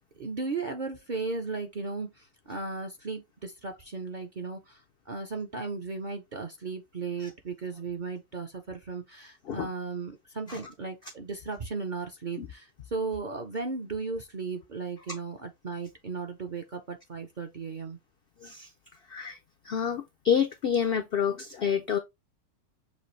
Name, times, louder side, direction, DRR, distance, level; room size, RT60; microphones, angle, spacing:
voice 1, 0.2-18.0, right 4 dB, 50° right, 0.6 m, -36 dB
voice 2, 19.1-19.4 19.6-22.0, left 8 dB, 70° left, 0.5 m, -28 dB
6.7 x 2.5 x 3.1 m
omnidirectional pair, 1.6 m